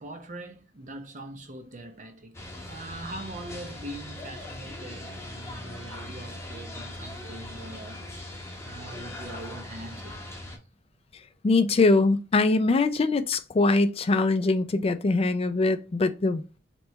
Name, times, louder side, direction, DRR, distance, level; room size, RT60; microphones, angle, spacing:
voice 1, 0.0-8.0 8.3-10.4, right 2 dB, 45° right, 0.7 m, -42 dB
sound 1, 2.3-10.6, left 1 dB, 15° left, 1.0 m, -40 dB
voice 2, 11.4-16.4, left 3 dB, 30° left, 0.4 m, -22 dB
3.4 x 3.0 x 4.2 m
head